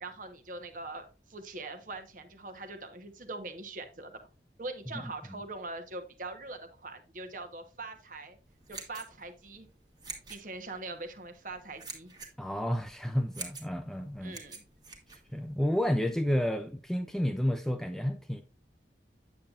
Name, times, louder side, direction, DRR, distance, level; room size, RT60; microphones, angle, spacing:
voice 1, 0.0-4.2 4.6-8.4 8.7-9.7 10.3-12.1 14.2-14.6, right 2 dB, 45° right, 1.1 m, -42 dB
sound 1, 8.5-15.8, right 4 dB, 25° right, 1.4 m, -47 dB
voice 2, 12.4-14.4 15.3-18.4, equal, ahead, 0.4 m, -30 dB
8.5 x 7.2 x 2.4 m
head